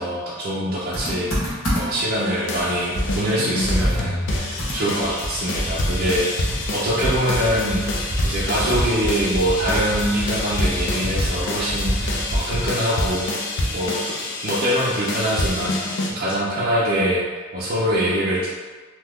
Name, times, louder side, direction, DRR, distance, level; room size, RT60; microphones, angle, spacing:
voice 1, 0.0-7.9 8.2-13.3 13.7-13.9 14.4-15.8 16.1-17.2 17.5-18.5, equal, 45° right, -8 dB, 0.5 m, -24 dB
Computer keyboard, 0.9-2.1 2.5-2.6 2.9-12.8, equal, 80° left, 1.2 m, -27 dB
sound 1, 2.1-16.1, left 2 dB, 60° left, 0.4 m, -27 dB
2.8 x 2.3 x 3.4 m, 1.4 s
head